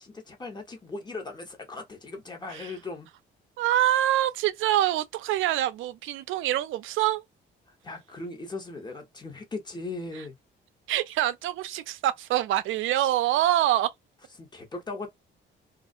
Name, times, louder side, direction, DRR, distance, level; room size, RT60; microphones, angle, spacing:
voice 1, 0.0-3.1 7.7-10.4 14.4-15.1, left 3 dB, 20° left, 1.0 m, -38 dB
voice 2, 3.6-7.2 10.9-13.9, right 13 dB, 85° right, 0.4 m, -25 dB
2.4 x 2.1 x 2.4 m
cardioid pair, 90°, 20 cm